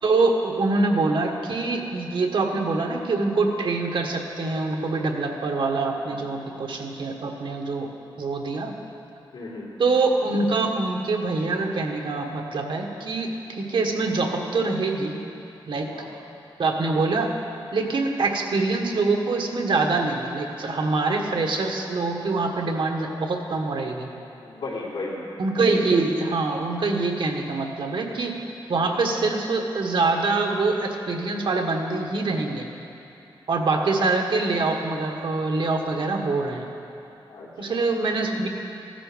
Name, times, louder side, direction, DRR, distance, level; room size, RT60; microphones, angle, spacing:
voice 1, 0.0-7.9 8.2-8.8 9.8-15.2 15.7-15.9 16.6-17.3 17.7-24.1 25.4-28.4 28.7-32.7 33.5-36.7 37.6-38.5, right 3 dB, 70° right, 2 dB, 1.5 m, -24 dB
voice 2, 5.9-6.6 9.3-9.8 15.9-16.1 24.4-25.2 37.3-37.8, left 3 dB, 85° left, -6 dB, 3.7 m, -36 dB
15.5 x 13.5 x 5.2 m, 2.8 s
wide cardioid pair, 140°, 9 cm